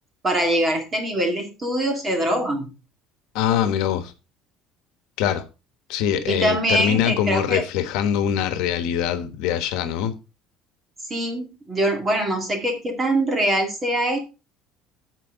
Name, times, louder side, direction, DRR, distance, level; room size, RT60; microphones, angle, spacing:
voice 1, 0.2-2.7 6.3-7.6 11.1-14.2, right 1 dB, 20° right, 2.3 m, -23 dB
voice 2, 3.3-4.1 5.2-5.4 5.9-10.1, left 9 dB, 75° left, 1.3 m, -23 dB
14.5 x 4.8 x 3.8 m
cardioid pair, 165°, 0 cm